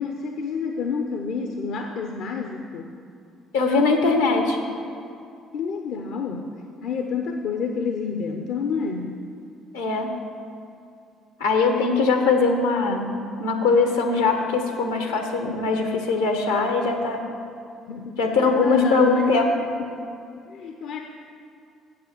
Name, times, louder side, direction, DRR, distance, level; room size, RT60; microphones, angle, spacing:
voice 1, 0.0-2.9 5.5-6.5 6.8-9.3 17.9-19.4 20.5-21.0, left 5 dB, 65° left, 4 dB, 0.6 m, -29 dB
voice 2, 3.5-4.7 9.7-10.1 11.4-13.1 13.4-17.2 18.2-19.5, left 4 dB, 85° left, 4 dB, 1.1 m, -21 dB
7.6 x 7.6 x 7.1 m, 2.4 s
hypercardioid pair, 50°, 0 cm